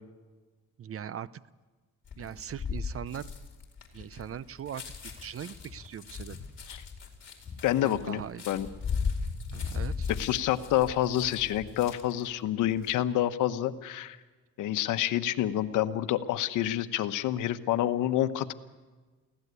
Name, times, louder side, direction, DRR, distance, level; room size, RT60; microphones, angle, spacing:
voice 1, 0.8-1.3 2.2-3.3 3.9-4.8 5.2-6.4 7.8-8.4 9.5-10.1, right 9 dB, 50° right, 18 dB, 0.7 m, -40 dB
sound 1, 2.1-12.2 12.6-12.9, left 5 dB, 40° left, 4.6 m, -37 dB
voice 2, 7.6-8.7 10.1-14.2 14.6-18.5, left 12 dB, 85° left, 11 dB, 1.1 m, -28 dB
23.5 x 17.0 x 8.2 m, 1.3 s
cardioid pair, 90°, 30 cm